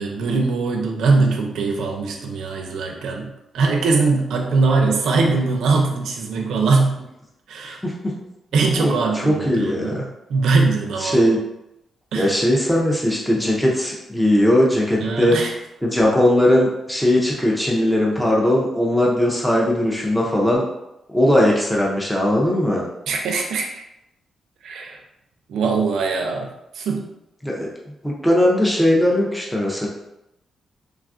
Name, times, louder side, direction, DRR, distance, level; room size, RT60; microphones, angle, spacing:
voice 1, 0.0-7.0 7.5-7.8 8.5-11.3 12.1-12.3 15.0-15.5 23.1-23.8 24.6-25.0 25.5-27.1, right 3 dB, 90° right, 1 dB, 0.4 m, -21 dB
voice 2, 7.8-8.2 8.7-10.0 11.0-11.4 12.1-15.4 15.8-20.6 21.1-22.9 27.4-27.7 28.0-29.9, left 1 dB, 5° left, -3 dB, 0.4 m, -19 dB
3.2 x 2.3 x 2.4 m, 0.87 s
wide cardioid pair, 160°, 0 cm